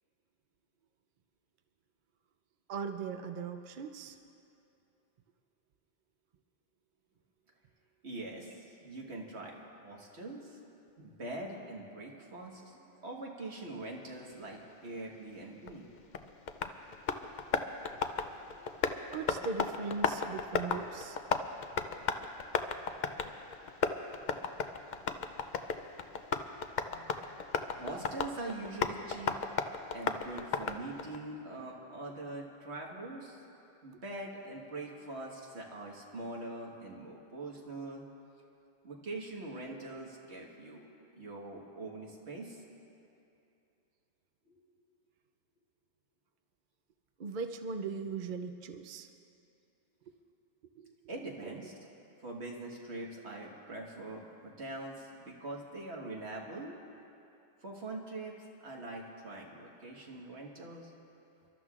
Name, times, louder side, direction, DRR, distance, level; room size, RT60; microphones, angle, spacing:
voice 1, 2.7-4.2 19.1-21.2 47.2-49.1 50.7-50.9 51.4-51.5, right 5 dB, 55° right, 5 dB, 0.7 m, -39 dB
voice 2, 8.0-10.6 11.0-15.9 27.8-29.4 29.9-33.4 33.8-38.0 38.8-40.8 41.2-42.6 44.5-44.6 51.1-51.7 52.2-56.8 57.6-60.9, right 2 dB, 85° right, -1 dB, 1.8 m, -43 dB
Tap, 15.7-31.2, left 5 dB, 50° left, 0.6 m, -36 dB
29.5 x 13.0 x 2.5 m, 2.7 s
omnidirectional pair, 1.1 m